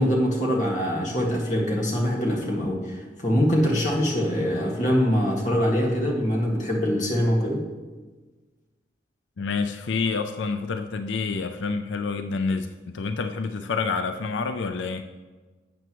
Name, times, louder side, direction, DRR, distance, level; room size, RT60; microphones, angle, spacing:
voice 1, 0.0-7.6, equal, 40° left, -2 dB, 1.8 m, -23 dB
voice 2, 9.4-15.1, left 4 dB, 90° left, 8 dB, 0.5 m, -28 dB
12.0 x 7.9 x 3.0 m, 1.3 s
head